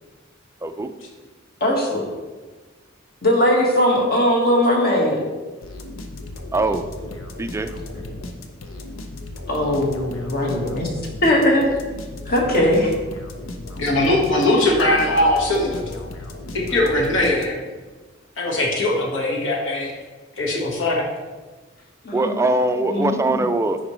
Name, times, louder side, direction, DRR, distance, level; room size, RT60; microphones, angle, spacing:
voice 1, 0.6-0.9 6.5-6.9 7.4-7.7 22.1-23.8, right 2 dB, 15° right, 9 dB, 0.3 m, -21 dB
voice 2, 1.6-2.0 3.2-5.2 9.5-10.9 11.2-11.7 12.3-12.9 22.0-23.4, left 1 dB, 50° left, -1 dB, 1.5 m, -20 dB
sound 1, 5.6-17.8, left 2 dB, 85° left, 0.7 m, -36 dB
voice 3, 13.8-16.0 16.5-17.6 18.4-19.9 20.4-21.1, left 1 dB, 70° left, -2 dB, 1.5 m, -20 dB
10.0 x 4.5 x 3.1 m, 1.3 s
head